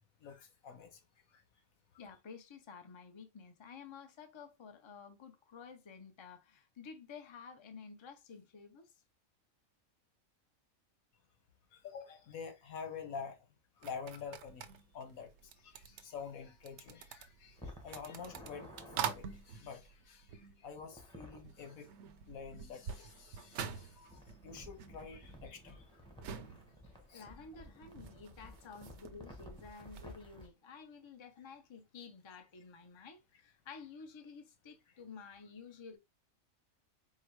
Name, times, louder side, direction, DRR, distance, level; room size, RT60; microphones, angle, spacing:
voice 1, 0.2-1.0 11.7-13.4 13.8-14.7 14.9-15.3 15.6-21.9 22.3-25.8 27.1-27.3, left 6 dB, 85° left, 1.4 m, -48 dB
voice 2, 2.0-8.9 26.3-26.4 26.8-36.0, left 5 dB, 30° left, 0.6 m, -52 dB
sound 1, 13.8-21.1 21.4-30.2, right 8 dB, 65° right, 0.8 m, -47 dB
sound 2, 17.6-19.0 20.8-21.4 24.1-30.5, left 1 dB, 5° left, 1.0 m, -54 dB
4.7 x 2.1 x 4.6 m
omnidirectional pair, 1.4 m